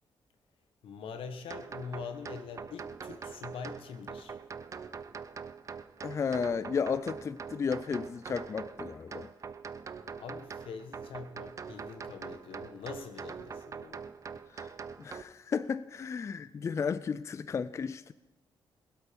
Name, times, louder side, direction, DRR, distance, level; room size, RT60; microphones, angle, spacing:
voice 1, 0.8-4.4 10.2-14.1, left 5 dB, 85° left, 1.4 m, -43 dB
sound 1, 1.5-15.2, right 5 dB, 35° right, 0.6 m, -43 dB
voice 2, 6.0-9.3 14.6-14.7 15.0-18.1, left 6 dB, 35° left, 0.4 m, -33 dB
20.5 x 8.0 x 5.3 m
cardioid pair, 125°, 9 cm